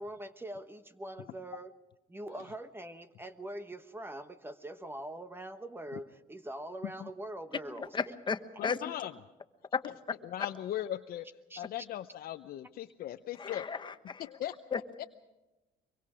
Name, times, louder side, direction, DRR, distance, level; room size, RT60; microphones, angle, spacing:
voice 1, 0.0-1.7 2.1-8.1 10.5-10.6 11.5-11.7, right 1 dB, 15° right, 10 dB, 1.1 m, -43 dB
voice 2, 7.9-8.8 13.4-13.9 14.7-14.8, left 5 dB, 30° left, 9 dB, 1.3 m, -34 dB
voice 3, 8.6-9.1 9.8-9.9 10.2-11.3 11.6-13.7 14.4-15.1, left 12 dB, 60° left, 7 dB, 0.7 m, -39 dB
24.0 x 23.5 x 5.1 m, 1.0 s
cardioid pair, 110°, 17 cm